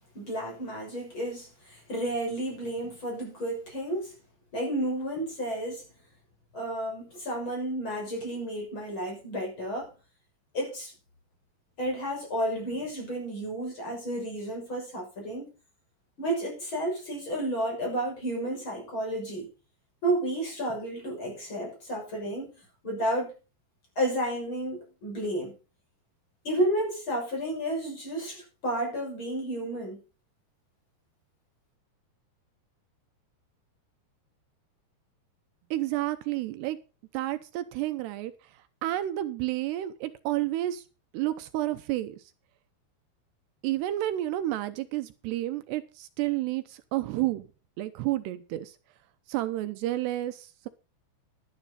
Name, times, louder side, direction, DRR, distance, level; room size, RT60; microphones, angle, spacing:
voice 1, 0.1-4.1 4.5-5.8 6.5-9.9 10.5-10.9 11.8-15.5 16.2-19.5 20.0-22.5 22.8-23.3 24.0-25.5 26.4-30.0, right 1 dB, 30° left, 7.3 m, -31 dB
voice 2, 35.7-36.8 37.1-40.8 41.1-42.2 43.6-47.5 47.8-48.8 49.3-50.7, right 15 dB, 80° right, 2.8 m, -30 dB
12.5 x 11.5 x 4.1 m
omnidirectional pair, 4.9 m